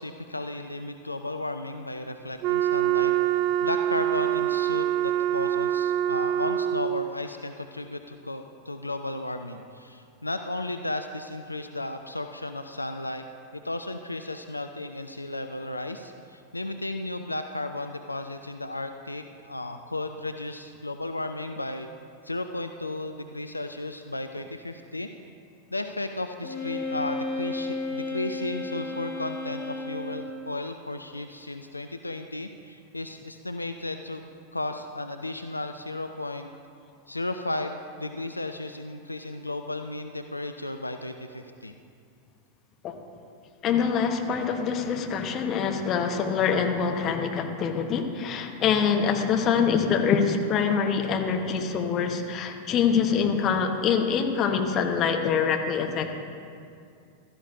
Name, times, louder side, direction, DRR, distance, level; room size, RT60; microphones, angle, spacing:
voice 1, 0.0-3.1 3.6-13.2 13.6-21.9 22.2-25.1 25.7-34.2 34.5-36.5 37.1-41.7, left 2 dB, 85° left, 7 dB, 0.4 m, -34 dB
Wind instrument woodwind instrument, 2.4-7.1, right 12 dB, 40° right, 0.3 m, -25 dB
Wind instrument woodwind instrument 2, 26.4-30.5, left 2 dB, 65° left, 2.5 m, -33 dB
voice 2, 43.6-56.2, left 6 dB, 30° left, 4 dB, 1.1 m, -25 dB
15.5 x 13.0 x 2.7 m, 2.4 s
figure-of-eight pair, 90°, 0 cm